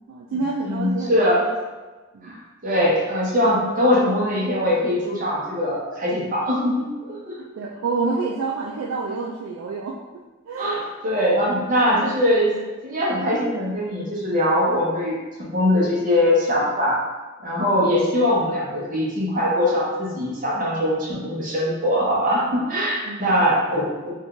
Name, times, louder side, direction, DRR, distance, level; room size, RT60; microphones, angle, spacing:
voice 1, 0.0-1.5 2.1-2.4 7.4-10.0 10.5-10.8 11.6-12.1 23.0-23.9, right 4 dB, 80° right, -2 dB, 0.3 m, -29 dB
voice 2, 0.6-1.5 2.2-2.4 2.6-7.4 10.6-12.5 12.8-17.0 17.4-24.1, left 1 dB, 40° right, -5 dB, 0.8 m, -22 dB
2.6 x 2.3 x 3.6 m, 1.2 s
head